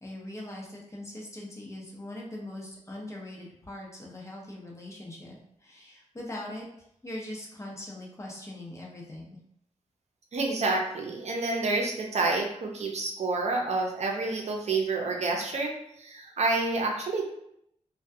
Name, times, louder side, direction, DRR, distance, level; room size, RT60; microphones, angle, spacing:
voice 1, 0.0-6.7 7.0-9.4, left 1 dB, 25° left, -3 dB, 0.7 m, -41 dB
voice 2, 10.3-17.2, right 3 dB, 60° right, 0 dB, 0.6 m, -28 dB
2.2 x 2.2 x 2.6 m, 0.75 s
cardioid pair, 80°, 13 cm